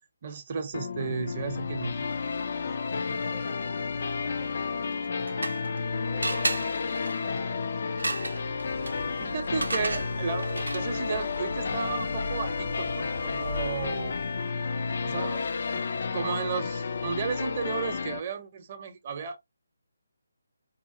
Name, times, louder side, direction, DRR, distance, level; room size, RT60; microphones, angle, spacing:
voice 1, 0.2-2.0 9.2-14.2 15.0-15.8 16.1-19.4, right 5 dB, 40° right, 0.6 m, -33 dB
sound 1, 0.7-18.2, left 5 dB, 55° left, 0.3 m, -32 dB
voice 2, 2.6-9.3, right 2 dB, ahead, 0.5 m, -52 dB
sound 2, 4.9-5.8 6.2-11.1, right 2 dB, 85° right, 0.5 m, -34 dB
Idling, 8.6-14.7, left 2 dB, 75° left, 0.7 m, -39 dB
2.8 x 2.2 x 2.6 m
figure-of-eight pair, 155°, 0 cm